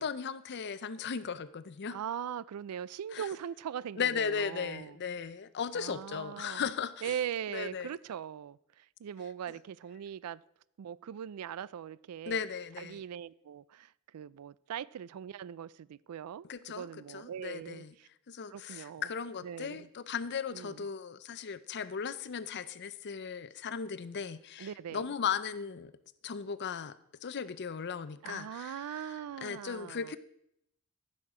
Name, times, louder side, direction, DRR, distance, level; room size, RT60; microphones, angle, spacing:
voice 1, 0.0-2.0 3.1-3.3 4.0-7.1 7.5-7.9 12.3-13.0 16.4-18.0 18.3-25.9 26.2-27.0 27.2-30.2, left 6 dB, 50° left, 0.5 m, -37 dB
voice 2, 1.9-5.0 5.7-6.6 7.0-10.4 10.8-12.4 12.8-16.5 16.7-18.1 18.5-19.1 19.4-19.9 20.5-20.8 24.6-25.1 28.2-30.2, right 9 dB, 85° right, 0.3 m, -40 dB
14.5 x 6.4 x 4.9 m
head